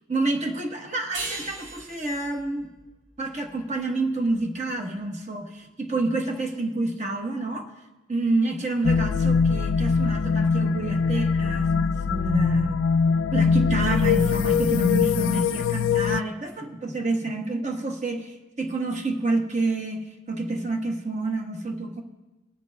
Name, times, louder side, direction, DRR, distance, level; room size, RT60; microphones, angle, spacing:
voice 1, 0.1-2.7 3.2-7.7 8.1-12.7 13.3-22.0, right 2 dB, 35° right, 3 dB, 1.1 m, -28 dB
sound 1, 1.1-4.3, right 3 dB, 70° right, 1.5 m, -38 dB
sound 2, 8.8-16.2, left 5 dB, 80° left, 0.3 m, -22 dB
19.0 x 11.0 x 2.2 m, 1.1 s
head